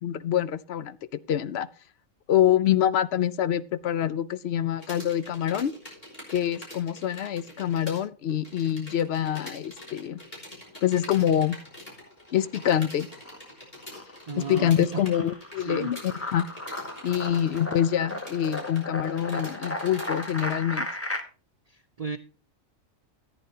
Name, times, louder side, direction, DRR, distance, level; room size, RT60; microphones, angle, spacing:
voice 1, 0.0-1.7 2.3-5.7 6.3-10.2 10.8-11.6 12.3-13.1 14.4-16.5 17.0-20.9, left 10 dB, 60° left, 0.7 m, -25 dB
sound 1, 4.8-8.0 8.3-20.6, left 1 dB, 30° left, 3.7 m, -45 dB
sound 2, 11.4-12.1 12.4-21.2, left 1 dB, 10° left, 1.0 m, -36 dB
voice 2, 14.3-15.0 15.6-15.9 17.3-17.4 21.7-22.2, right 5 dB, 85° right, 0.3 m, -34 dB
14.0 x 9.0 x 2.8 m
omnidirectional pair, 1.4 m